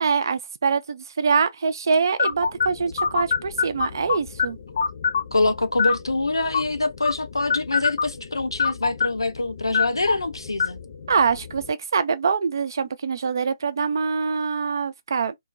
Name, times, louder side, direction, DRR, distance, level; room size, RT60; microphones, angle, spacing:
voice 1, 0.0-4.6 11.1-15.4, right 5 dB, 55° right, 0.4 m, -24 dB
sound 1, 2.2-11.7, left 6 dB, 50° left, 0.8 m, -27 dB
voice 2, 5.3-10.8, left 2 dB, 85° left, 0.5 m, -25 dB
2.2 x 2.1 x 2.5 m
figure-of-eight pair, 140°, 2 cm